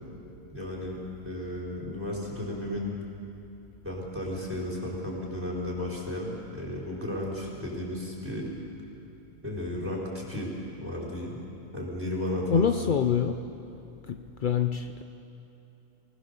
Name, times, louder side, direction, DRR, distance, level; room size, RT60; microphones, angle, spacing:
voice 1, 0.5-1.0 1.2-2.9 3.8-8.5 9.4-10.5 10.8-11.4 11.7-13.0, left 1 dB, 10° right, -4 dB, 4.4 m, -34 dB
voice 2, 12.5-13.4 14.1-15.0, left 7 dB, 65° left, 7 dB, 0.5 m, -26 dB
25.0 x 19.0 x 6.9 m, 2.8 s
omnidirectional pair, 1.6 m